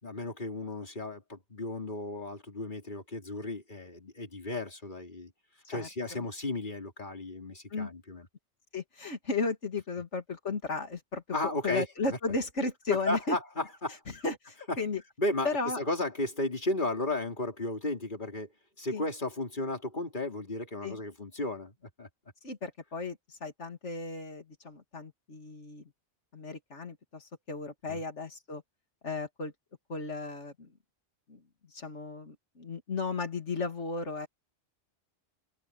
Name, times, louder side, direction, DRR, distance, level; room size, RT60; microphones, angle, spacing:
voice 1, 0.0-5.3 5.7-8.3 11.3-11.9 12.9-14.2 14.7-14.8 15.2-15.5 15.8-18.5 18.8-22.1 27.9-28.0, left 2 dB, 45° left, 3.7 m, -34 dB
voice 2, 5.7-6.3 7.7-7.9 8.7-11.2 11.6-13.4 14.1-15.0 15.4-15.8 18.9-19.0 20.8-21.0 22.4-25.8 26.3-28.6 29.0-29.5 29.9-30.7 31.3-31.4 31.7-34.3, left 3 dB, 85° left, 2.8 m, -35 dB
omnidirectional pair, 1.2 m